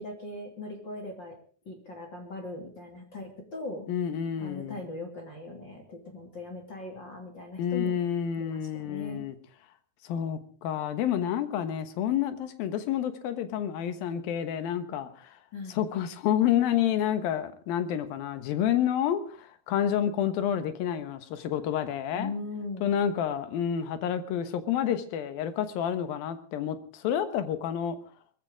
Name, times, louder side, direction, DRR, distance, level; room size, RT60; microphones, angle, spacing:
voice 1, 0.0-1.4 1.6-3.9 4.4-8.0 8.4-9.2 15.5-15.8 22.1-22.9, left 2 dB, 35° left, 3 dB, 2.8 m, -39 dB
voice 2, 3.9-4.8 7.6-9.4 10.0-15.4 15.7-22.3 22.8-28.0, left 9 dB, 75° left, 10 dB, 3.0 m, -29 dB
22.5 x 14.5 x 3.7 m, 0.41 s
omnidirectional pair, 4.4 m